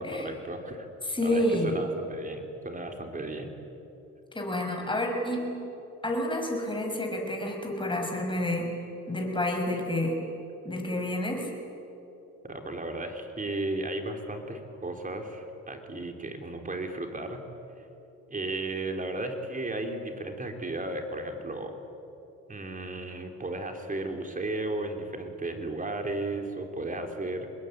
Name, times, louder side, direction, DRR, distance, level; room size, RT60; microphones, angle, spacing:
voice 1, 0.0-0.9 1.2-3.5 12.4-17.4 18.3-21.8 22.5-27.5, right 2 dB, 25° right, 4 dB, 3.6 m, -34 dB
voice 2, 1.0-1.8 4.3-5.6 6.0-8.8 9.1-10.2 10.6-11.5, left 1 dB, 15° left, 2 dB, 6.0 m, -29 dB
26.0 x 21.0 x 9.4 m, 3.0 s
cardioid pair, 90°, 30 cm